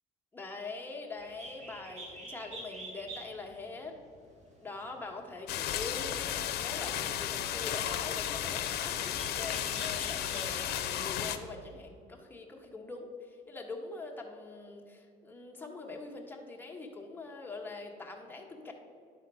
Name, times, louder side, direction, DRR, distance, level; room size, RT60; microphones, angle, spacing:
voice 1, 0.3-4.0 4.6-18.7, left 3 dB, 10° left, 0 dB, 1.4 m, -43 dB
Bird, 1.2-10.8, right 1 dB, 40° right, 1.8 m, -49 dB
sound 1, 5.5-11.4, left 11 dB, 70° left, 0.7 m, -34 dB
10.5 x 4.2 x 6.2 m, 2.4 s
cardioid pair, 110°, 17 cm